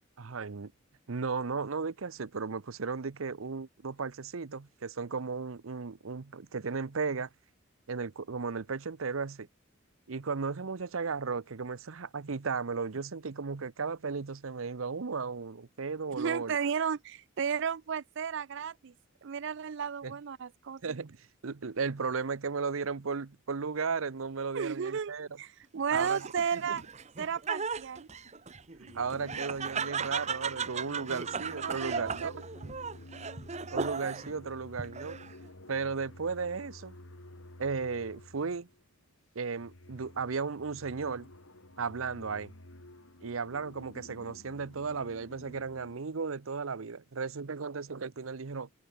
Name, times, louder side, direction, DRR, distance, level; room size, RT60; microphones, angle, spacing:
voice 1, 0.2-0.7 1.1-7.3 7.9-9.5 10.1-16.6 20.0-20.1 20.8-25.3 25.9-26.2 26.7-26.8 28.9-32.4 33.7-35.2 35.7-36.9 37.6-38.7 39.3-41.3 41.8-42.5 43.2-48.7, right 5 dB, 90° right, 0.8 m, -35 dB
voice 2, 16.2-18.9 19.2-21.0 24.5-25.1 25.4-26.8 27.2-28.1 31.5-32.3, right 7 dB, 65° right, 0.5 m, -33 dB
Laughter, 25.9-34.4 34.8-35.5, right 5 dB, 35° right, 1.1 m, -36 dB
sound 1, 28.1-28.4 28.8-38.9 39.4-46.0, left 1 dB, 85° left, 3.7 m, -51 dB
head